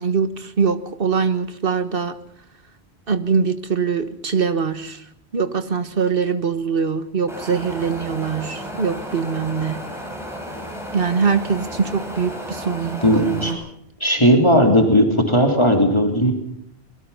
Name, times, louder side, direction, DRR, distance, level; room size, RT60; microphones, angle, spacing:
voice 1, 0.0-2.1 3.1-5.0 5.3-9.8 10.9-13.6, right 6 dB, 60° right, 1.6 m, -22 dB
Wind, 7.3-13.5, equal, ahead, 6.2 m, -33 dB
voice 2, 13.0-13.5 14.0-16.3, equal, 25° left, 3.2 m, -16 dB
25.5 x 22.0 x 5.7 m
omnidirectional pair, 1.1 m